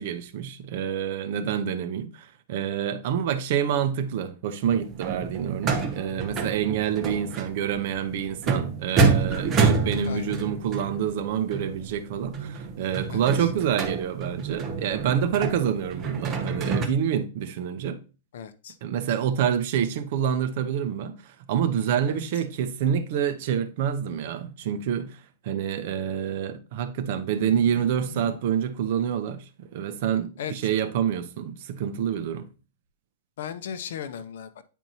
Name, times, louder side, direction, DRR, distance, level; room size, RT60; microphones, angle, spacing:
voice 1, 0.0-18.0 18.8-32.5, right 8 dB, 50° right, 0.7 m, -27 dB
sound 1, 4.6-16.9, right 5 dB, 20° right, 0.8 m, -28 dB
voice 2, 10.1-10.4 13.1-13.3 18.3-18.7 22.1-22.2 27.4-27.8 28.1-28.4 30.4-30.5 33.4-34.5, left 8 dB, 70° left, 0.7 m, -36 dB
9.1 x 4.5 x 2.7 m
supercardioid pair, 170°, 0 cm